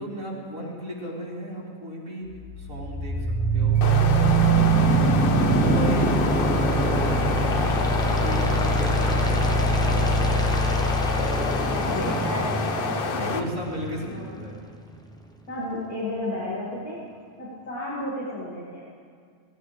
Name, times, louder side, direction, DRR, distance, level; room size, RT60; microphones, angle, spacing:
voice 1, 0.0-2.3 2.6-10.1 11.1-11.6 12.3-12.5 13.1-14.6, equal, 65° right, -6 dB, 3.8 m, -35 dB
sound 1, 2.3-14.3, right 2 dB, 5° left, 0.5 m, -23 dB
sound 2, 3.7-13.4, left 4 dB, 50° left, 0.7 m, -29 dB
voice 2, 11.8-13.4 14.0-14.3 15.5-17.0 17.4-18.9, left 1 dB, 80° left, -7 dB, 2.8 m, -32 dB
17.5 x 16.5 x 3.3 m, 2.1 s
omnidirectional pair, 1.5 m